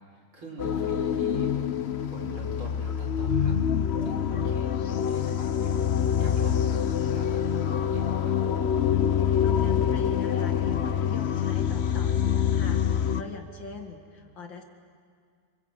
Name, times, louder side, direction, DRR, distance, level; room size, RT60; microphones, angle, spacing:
voice 1, 0.1-1.5 2.0-3.6 4.0-5.8 6.1-6.8 7.1-8.4, right 1 dB, 70° right, -3 dB, 5.7 m, -43 dB
sound 1, 0.6-13.2, left 8 dB, 80° left, 0.5 m, -26 dB
voice 2, 9.4-14.6, left 4 dB, 60° left, 3 dB, 2.7 m, -42 dB
27.0 x 25.5 x 8.3 m, 2.1 s
omnidirectional pair, 2.4 m